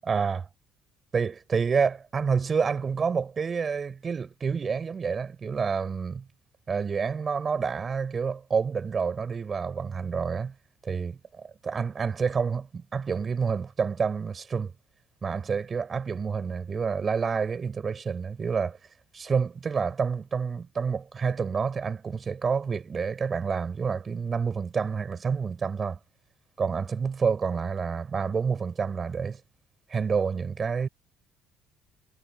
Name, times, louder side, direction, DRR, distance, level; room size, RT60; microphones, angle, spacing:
voice 1, 0.1-0.5 1.1-6.3 6.7-10.5 10.8-14.7 15.2-18.8 19.1-26.0 26.6-29.4 29.9-30.9, right 5 dB, 40° right, 6.6 m, -28 dB
hypercardioid pair, 60°, 0 cm